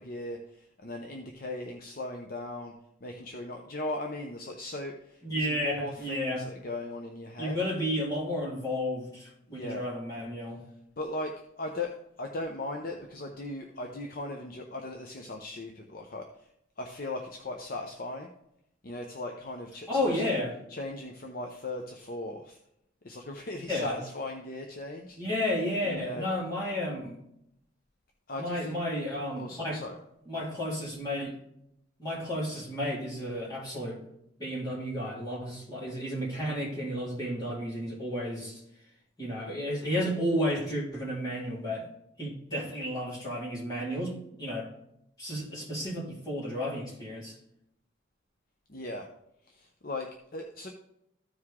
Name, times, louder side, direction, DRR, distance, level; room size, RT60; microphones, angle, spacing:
voice 1, 0.0-2.7 3.0-7.6 9.5-9.8 11.0-16.5 16.8-18.3 18.8-20.4 20.7-22.6 23.0-25.2 25.8-26.3 28.3-28.7 29.3-30.0 30.4-30.5 48.7-49.1 49.5-50.7, left 2 dB, 45° left, 2 dB, 0.7 m, -38 dB
voice 2, 5.2-6.4 7.4-10.6 19.9-20.5 23.7-24.0 25.2-27.2 28.4-29.8 30.3-31.3 32.0-34.0 34.4-38.6 39.2-41.9 42.2-44.7 45.2-47.3, equal, 20° left, -7 dB, 3.7 m, -32 dB
14.0 x 4.8 x 3.6 m, 0.79 s
head